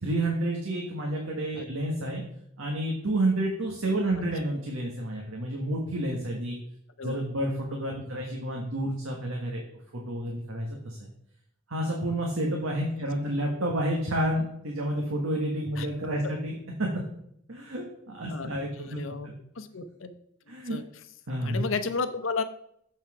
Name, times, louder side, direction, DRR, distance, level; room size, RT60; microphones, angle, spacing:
voice 1, 0.0-2.2 2.6-6.6 7.0-9.6 9.9-11.1 11.7-16.9 17.5-19.4 20.5-20.8 21.3-21.6, right 1 dB, 85° right, 0 dB, 1.4 m, -30 dB
voice 2, 18.8-19.3 19.6-20.2 20.7-20.8 21.4-22.4, left 4 dB, 70° left, 10 dB, 0.8 m, -32 dB
7.1 x 5.8 x 4.9 m, 0.70 s
head